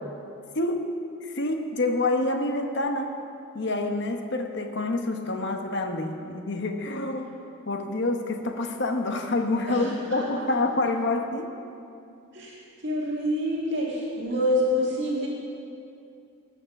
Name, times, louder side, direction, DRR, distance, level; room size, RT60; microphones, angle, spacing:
voice 1, 0.5-0.9 1.2-3.1 3.5-7.3 7.7-11.5, left 2 dB, 55° left, 5 dB, 1.0 m, -27 dB
voice 2, 9.7-10.5 12.3-15.3, left 1 dB, 55° right, -4 dB, 2.0 m, -27 dB
18.0 x 6.5 x 5.9 m, 2.6 s
head